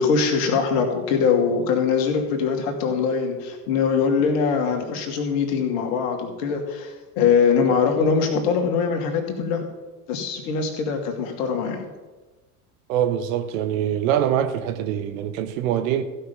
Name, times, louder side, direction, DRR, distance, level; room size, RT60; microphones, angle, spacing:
voice 1, 0.0-9.7 10.1-11.9, left 5 dB, 55° left, 2.3 m, -22 dB
voice 2, 12.9-16.0, right 10 dB, 55° right, 1.1 m, -24 dB
15.0 x 5.8 x 6.9 m
figure-of-eight pair, 75°, 46 cm